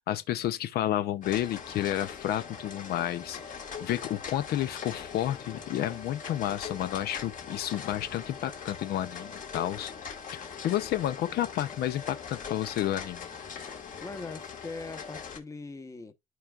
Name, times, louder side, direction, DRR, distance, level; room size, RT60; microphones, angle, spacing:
voice 1, 0.0-3.4 3.8-9.9 10.3-13.3, left 12 dB, 70° left, 0.6 m, -31 dB
sound 1, 1.2-15.4, left 6 dB, 50° left, 1.8 m, -41 dB
voice 2, 14.0-16.1, left 3 dB, 20° left, 0.9 m, -41 dB
12.5 x 4.6 x 2.4 m
cardioid pair, 110°, 17 cm